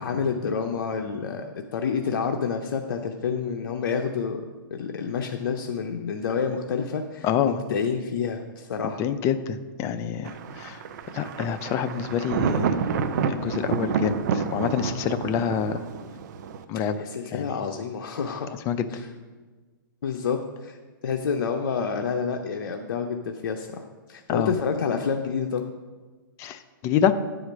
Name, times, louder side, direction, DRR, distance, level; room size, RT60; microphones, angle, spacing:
voice 1, 0.0-4.5 4.7-9.0 16.7-18.5 18.9-19.1 20.0-20.8 21.0-25.6, left 6 dB, 75° left, 3 dB, 0.7 m, -28 dB
voice 2, 7.2-7.6 9.0-10.8 11.1-12.8 13.3-15.8 16.7-17.0 17.3-17.4 18.7-18.9 24.3-24.5 26.4-27.1, left 8 dB, 25° left, 11 dB, 0.5 m, -26 dB
Thunder, 10.2-16.6, right 6 dB, 50° right, 0.6 m, -29 dB
9.1 x 5.0 x 6.1 m, 1.3 s
hypercardioid pair, 145°, 12 cm